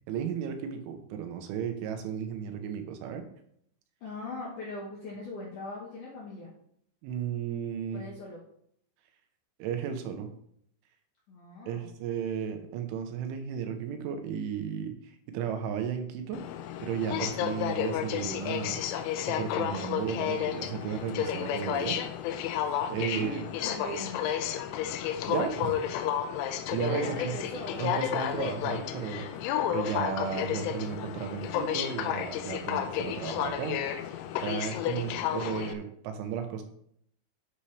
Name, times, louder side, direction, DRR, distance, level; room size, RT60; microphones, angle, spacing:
voice 1, 0.1-3.2 7.0-8.0 9.6-10.3 11.7-16.4 16.8-18.8 19.3-22.0 22.9-23.4 25.3-25.8 26.7-27.3 27.8-29.3 29.7-33.8 34.4-36.6, right 8 dB, 80° right, 6 dB, 3.3 m, -34 dB
voice 2, 4.0-6.5 7.9-8.4 11.3-11.9 23.1-24.2 26.6-27.9 34.9-35.4, left 2 dB, 65° left, -4 dB, 2.0 m, -40 dB
Aircraft, 16.3-35.7, left 10 dB, 85° left, 3.2 m, -32 dB
8.8 x 8.6 x 3.3 m, 0.69 s
omnidirectional pair, 5.5 m